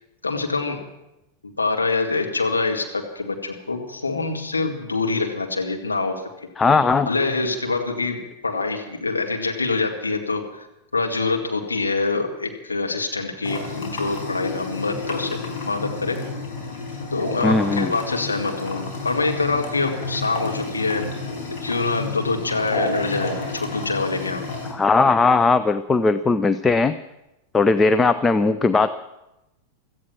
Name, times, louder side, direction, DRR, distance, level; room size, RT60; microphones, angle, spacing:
voice 1, 0.2-0.8 1.4-6.2 7.1-10.7 10.9-15.4 15.6-16.2 17.1-21.0 21.6-24.4, left 3 dB, 80° left, 2 dB, 2.3 m, -25 dB
voice 2, 6.6-7.1 17.4-17.9 24.7-26.9 27.5-29.0, left 3 dB, 15° left, 12 dB, 0.5 m, -18 dB
sound 1, 13.4-24.7, left 3 dB, 45° left, 4.9 m, -31 dB
17.0 x 14.0 x 6.0 m, 0.91 s
figure-of-eight pair, 90°, 0 cm